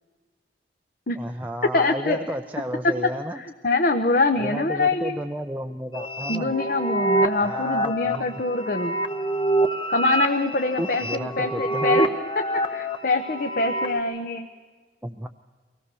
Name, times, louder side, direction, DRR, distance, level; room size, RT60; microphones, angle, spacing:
voice 1, 1.2-3.4 4.4-6.5 7.4-8.4 10.8-12.1 15.0-15.3, equal, 10° right, 3 dB, 0.5 m, -32 dB
voice 2, 1.7-2.3 3.4-5.2 6.3-8.9 9.9-12.1 12.7-14.5, left 3 dB, 55° left, 5 dB, 0.9 m, -24 dB
sound 1, 5.9-14.0, right 1 dB, 30° left, 0.9 m, -26 dB
23.5 x 17.5 x 6.9 m, 1.4 s
head